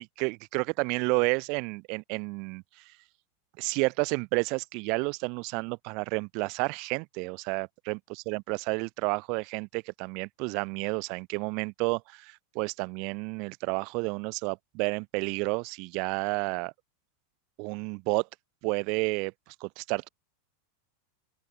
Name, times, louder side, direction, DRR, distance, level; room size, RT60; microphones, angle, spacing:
voice 1, 0.0-2.6 3.6-8.0 8.3-16.7 17.6-18.3 18.6-19.3 19.6-20.1, right 31 dB, 50° right, 2.8 m, -30 dB
open air
supercardioid pair, 130°, 0 cm